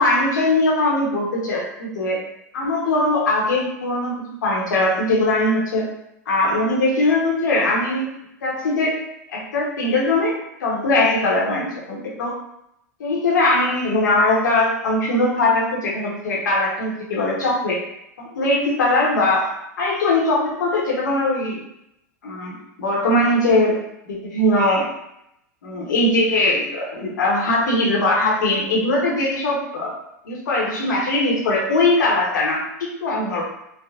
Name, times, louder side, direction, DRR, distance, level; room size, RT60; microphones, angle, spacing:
voice 1, 0.0-2.2 2.5-4.2 4.4-5.9 6.3-8.1 8.4-9.0 9.3-12.3 13.0-17.8 18.2-21.6 22.2-23.8 24.1-24.9 25.6-29.9 30.2-33.4, left 2 dB, 80° left, -3 dB, 0.9 m, -20 dB
3.4 x 2.1 x 2.4 m, 0.81 s
hypercardioid pair, 100°, 10 cm